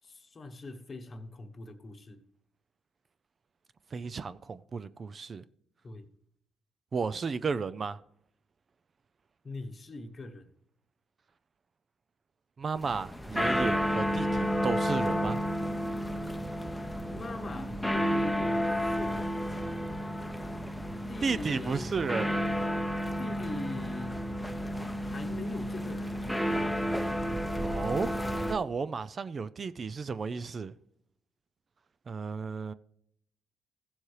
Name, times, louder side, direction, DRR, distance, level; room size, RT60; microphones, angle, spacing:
voice 1, 0.0-2.2 5.8-6.1 9.4-10.5 17.1-19.4 21.1-22.0 23.2-24.2 25.0-26.1, left 2 dB, 35° left, 1.0 m, -42 dB
voice 2, 3.9-5.4 6.9-8.0 12.6-15.4 21.2-22.3 27.6-28.1 28.5-30.7 32.1-32.7, right 5 dB, 40° right, 0.4 m, -33 dB
sound 1, 12.8-28.5, equal, 5° left, 0.7 m, -31 dB
15.5 x 7.2 x 3.2 m
cardioid pair, 90°, 0 cm